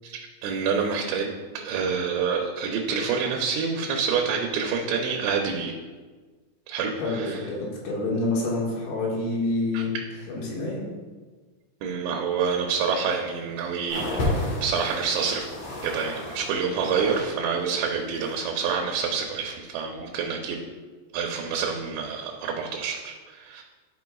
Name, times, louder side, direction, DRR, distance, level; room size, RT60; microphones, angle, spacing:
voice 1, 0.0-5.7 6.7-7.4 9.7-10.0 11.8-14.2 14.6-15.5 15.8-20.7 21.1-23.6, right 6 dB, 85° right, 1 dB, 2.9 m, -27 dB
voice 2, 7.0-9.9 10.3-10.8, left 2 dB, 80° left, -5 dB, 4.0 m, -27 dB
sound 1, 13.9-17.3 17.6-18.5 19.2-19.3, left 1 dB, 55° left, 2.0 m, -32 dB
12.5 x 5.5 x 2.3 m, 1.4 s
omnidirectional pair, 5.1 m